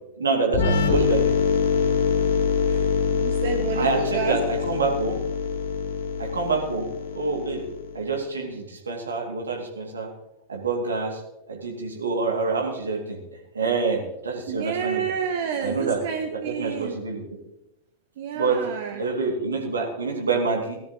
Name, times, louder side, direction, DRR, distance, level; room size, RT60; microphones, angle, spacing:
voice 1, 0.2-1.3 3.7-5.2 6.2-7.7 7.9-10.1 10.5-11.2 11.5-13.2 13.5-15.1 15.6-16.0 16.3-17.2 18.3-18.6 19.0-20.8, right 4 dB, 75° right, 0 dB, 2.7 m, -26 dB
sound 1, 0.5-8.1, left 6 dB, 55° left, 1.6 m, -24 dB
voice 2, 2.7-4.4 14.5-17.0 18.2-19.0, right 7 dB, 55° right, 4 dB, 1.1 m, -30 dB
18.0 x 12.5 x 3.2 m, 0.90 s
figure-of-eight pair, 90°, 0 cm